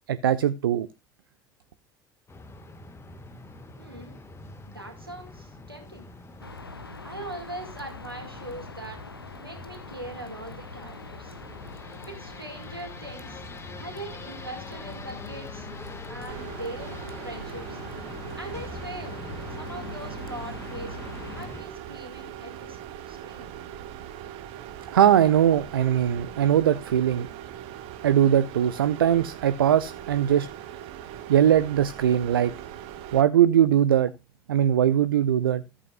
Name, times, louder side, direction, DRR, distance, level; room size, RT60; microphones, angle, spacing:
voice 1, 0.1-0.9 24.9-27.3 28.0-30.5 31.3-32.5 33.1-34.1 34.5-35.6, right 10 dB, 75° right, 0.4 m, -21 dB
sound 1, 2.3-21.6, left 2 dB, 20° left, 1.7 m, -44 dB
voice 2, 3.8-4.2 4.6-6.1 7.0-9.0 9.4-11.3 12.1-13.4 13.8-15.7 16.1-17.0 17.2-17.8 18.4-19.2 19.6-21.0 21.3-22.8 23.1-23.5, right 1 dB, 90° right, 2.1 m, -41 dB
sound 2, 6.4-21.5, left 2 dB, 85° left, 0.7 m, -43 dB
sound 3, 16.3-33.2, right 10 dB, 55° right, 1.0 m, -41 dB
13.5 x 8.3 x 2.4 m
figure-of-eight pair, 65°, 12 cm